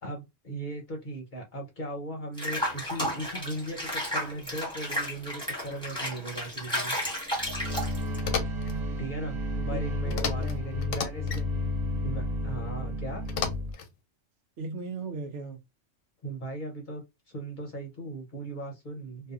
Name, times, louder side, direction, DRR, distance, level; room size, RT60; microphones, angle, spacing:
voice 1, 0.0-7.0 9.0-11.5 12.0-13.3 16.2-19.3, right 2 dB, 45° left, 0.8 m, -38 dB
Water / Bathtub (filling or washing), 2.4-8.3, equal, 5° left, 1.0 m, -33 dB
sound 1, 7.4-13.7, left 1 dB, 90° right, 1.2 m, -32 dB
sound 2, 8.2-8.8 10.1-10.5 10.8-11.4 13.3-13.9, left 6 dB, 80° left, 1.1 m, -33 dB
voice 2, 9.7-10.6 14.6-15.6, right 3 dB, 70° right, 0.9 m, -38 dB
2.6 x 2.3 x 2.3 m
omnidirectional pair, 1.3 m